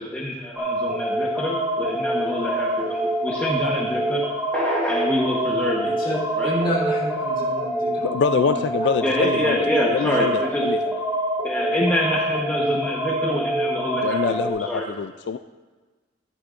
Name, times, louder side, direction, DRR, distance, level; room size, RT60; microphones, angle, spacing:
voice 1, 0.0-4.2 4.5-5.9 6.4-6.5 9.0-10.6 11.4-14.9, equal, 10° left, -4 dB, 1.1 m, -26 dB
sound 1, 0.6-14.5, right 1 dB, 10° right, 2.5 m, -26 dB
voice 2, 6.0-8.6, equal, 30° left, -5 dB, 3.3 m, -29 dB
voice 3, 8.0-10.9 11.7-11.8 14.0-15.4, left 5 dB, 70° left, 10 dB, 0.3 m, -25 dB
13.5 x 11.5 x 2.6 m, 1.3 s
head